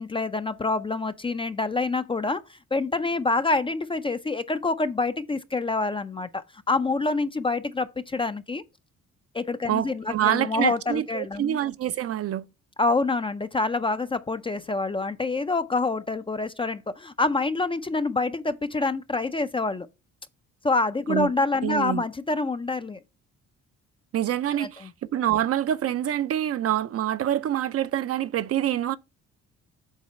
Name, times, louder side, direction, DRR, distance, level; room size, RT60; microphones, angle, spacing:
voice 1, 0.0-8.6 9.3-11.6 12.8-19.9 20.6-23.0 24.5-24.9, left 3 dB, 20° left, 0.4 m, -27 dB
voice 2, 9.7-12.4 21.1-21.3 21.6-22.0 24.1-29.0, right 11 dB, 50° right, 0.5 m, -26 dB
7.3 x 3.8 x 4.2 m
cardioid pair, 90°, 30 cm